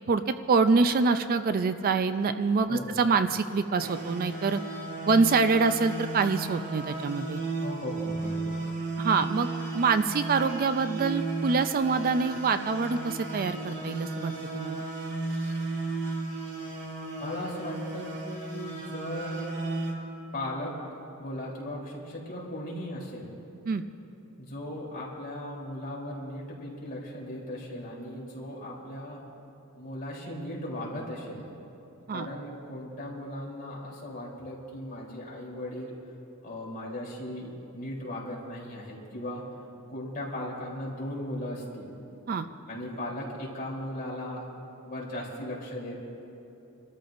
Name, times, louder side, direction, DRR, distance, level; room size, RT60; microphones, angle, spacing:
voice 1, 0.1-4.6 5.1-7.4 9.0-9.5 9.7-14.8 23.7-23.8 32.1-32.3 42.3-42.5, right 4 dB, 40° right, 10 dB, 0.4 m, -25 dB
voice 2, 2.7-3.0 7.6-8.6 17.2-19.5 20.3-20.8 21.2-23.3 24.4-29.2 29.7-31.5 32.1-35.9 36.4-39.4 39.9-41.9 42.7-44.4 44.8-46.0, left 1 dB, 40° left, -5 dB, 3.4 m, -37 dB
sound 1, 3.8-19.9, right 3 dB, 55° right, 2.4 m, -34 dB
28.0 x 13.5 x 2.6 m, 2.9 s
head